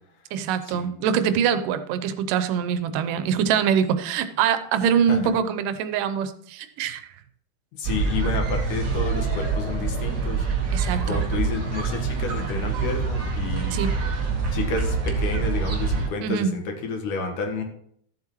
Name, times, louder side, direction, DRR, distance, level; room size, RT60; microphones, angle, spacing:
voice 1, 0.3-7.0 10.7-11.2 13.7-14.0 16.2-16.6, right 8 dB, 90° right, 11 dB, 2.3 m, -24 dB
voice 2, 7.8-10.5 11.0-13.8 14.5-17.6, left 4 dB, 75° left, 3 dB, 2.8 m, -30 dB
sound 1, 7.8-16.1, right 4 dB, 60° right, 1.0 m, -25 dB
14.0 x 7.6 x 3.0 m, 0.66 s
omnidirectional pair, 3.7 m